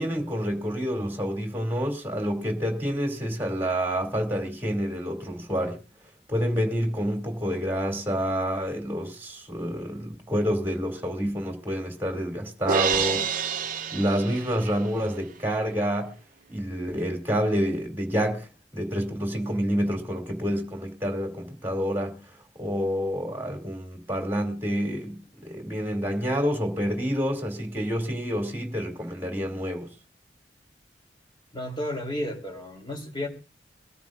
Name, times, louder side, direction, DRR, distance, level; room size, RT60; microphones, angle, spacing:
voice 1, 0.0-5.8 6.3-13.3 13.9-16.1 16.5-29.9, equal, 15° right, 2.8 m, -28 dB
Crash cymbal, 12.7-14.9, right 6 dB, 50° right, 0.9 m, -28 dB
voice 2, 31.5-33.3, left 1 dB, 30° left, 3.3 m, -32 dB
23.0 x 13.5 x 2.6 m
head